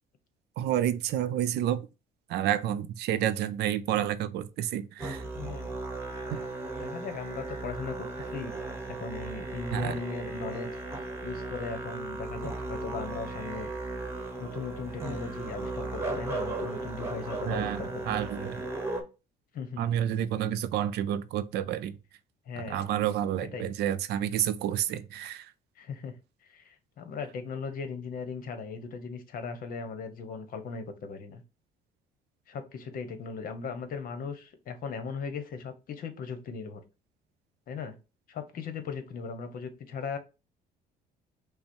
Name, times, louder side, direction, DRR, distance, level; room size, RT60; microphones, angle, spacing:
voice 1, 0.6-1.9 2.3-5.2 6.3-6.4 9.7-10.0 17.5-18.6 19.8-22.0 22.7-25.5, right 11 dB, 75° right, 0.5 m, -29 dB
Musical instrument, 5.0-19.0, right 2 dB, 15° right, 1.2 m, -36 dB
voice 2, 5.4-5.8 6.8-8.6 9.0-10.7 11.2-13.7 14.4-18.2 19.5-19.8 22.5-22.9 23.5-23.7 25.8-26.1 26.4-31.4 32.5-36.8 37.7-37.9 38.3-40.2, left 5 dB, 60° left, 1.0 m, -38 dB
5.6 x 2.1 x 4.4 m
cardioid pair, 110°, 17 cm